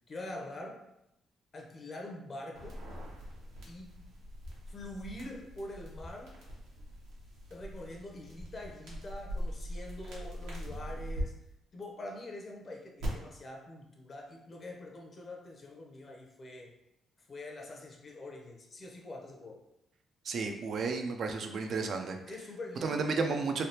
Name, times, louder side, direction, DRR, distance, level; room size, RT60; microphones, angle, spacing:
voice 1, 0.1-0.8 1.5-2.8 3.7-4.0 4.7-6.3 7.5-11.3 11.7-16.7 17.3-19.6 22.3-23.4, left 1 dB, 40° left, 1 dB, 0.7 m, -45 dB
sound 1, 2.5-11.2 13.0-13.1, equal, 90° right, 0.9 m, -43 dB
voice 2, 20.2-22.2 22.8-23.6, right 4 dB, 60° right, 4 dB, 0.4 m, -32 dB
3.3 x 2.3 x 2.8 m, 0.85 s
cardioid pair, 90°, 0 cm